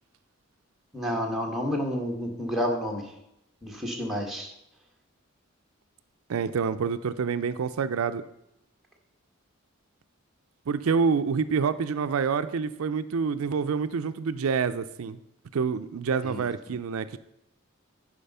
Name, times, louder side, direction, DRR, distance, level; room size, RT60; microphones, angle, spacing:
voice 1, 0.9-3.0 3.6-4.5 16.2-16.4, equal, ahead, 0 dB, 1.4 m, -29 dB
voice 2, 6.3-8.2 10.7-15.2 15.5-17.2, right 5 dB, 80° right, 12 dB, 0.4 m, -27 dB
10.0 x 5.1 x 5.4 m, 0.83 s
head